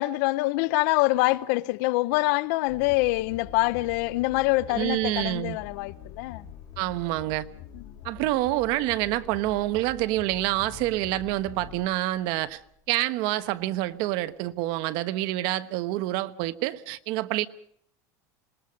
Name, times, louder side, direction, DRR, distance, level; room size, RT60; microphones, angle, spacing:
voice 1, 0.0-6.5 7.7-7.8, left 20 dB, 70° left, 0.8 m, -25 dB
sound 1, 2.7-12.9, left 9 dB, 45° left, 2.7 m, -45 dB
voice 2, 4.7-5.6 6.8-7.4 8.0-12.6 12.9-17.5, right 16 dB, 60° right, 1.1 m, -27 dB
26.5 x 20.5 x 5.2 m
supercardioid pair, 145°, 9 cm